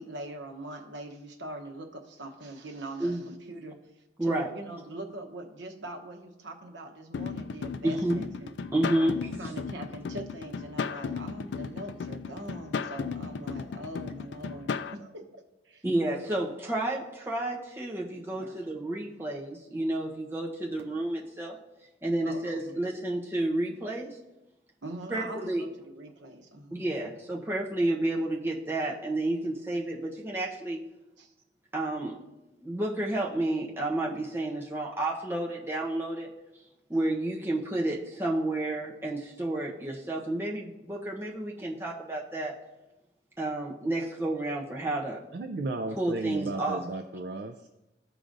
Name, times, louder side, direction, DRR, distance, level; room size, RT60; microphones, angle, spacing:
voice 1, 0.0-3.8 4.2-8.6 9.0-15.8 18.4-18.6 20.9-21.0 22.2-22.8 24.8-26.8 31.2-31.3, right 1 dB, 85° right, 3 dB, 0.9 m, -42 dB
voice 2, 4.2-4.5 7.8-8.2 8.7-9.5 15.8-21.6 22.0-24.1 25.1-25.6 26.7-30.8 31.7-32.2 32.6-36.3 36.9-42.5 43.4-45.2 46.0-46.8, right 1 dB, 15° right, -3 dB, 0.9 m, -30 dB
sound 1, 7.1-14.9, left 5 dB, 75° left, 0.3 m, -35 dB
voice 3, 45.3-47.7, right 2 dB, 65° right, 6 dB, 0.4 m, -34 dB
14.0 x 4.9 x 2.6 m, 0.98 s
head